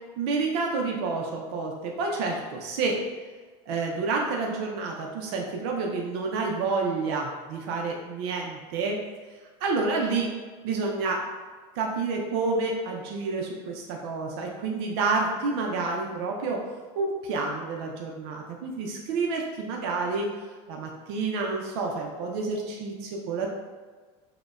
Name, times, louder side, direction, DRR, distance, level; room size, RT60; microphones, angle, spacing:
voice 1, 0.2-3.0 3.7-9.0 9.6-10.3 10.6-11.2 11.8-16.7 16.9-20.3 20.7-23.5, right 4 dB, 80° right, 0 dB, 0.5 m, -29 dB
4.9 x 2.1 x 2.3 m, 1.4 s
cardioid pair, 155°, 14 cm